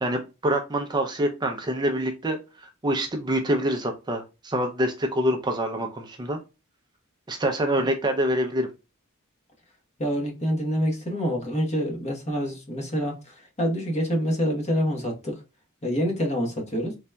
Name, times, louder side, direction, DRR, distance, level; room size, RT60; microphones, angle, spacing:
voice 1, 0.0-6.4 7.3-8.7, right 1 dB, 20° right, 0.4 m, -26 dB
voice 2, 10.0-15.3 15.8-17.0, equal, 30° left, 1.0 m, -26 dB
3.9 x 3.3 x 2.2 m
head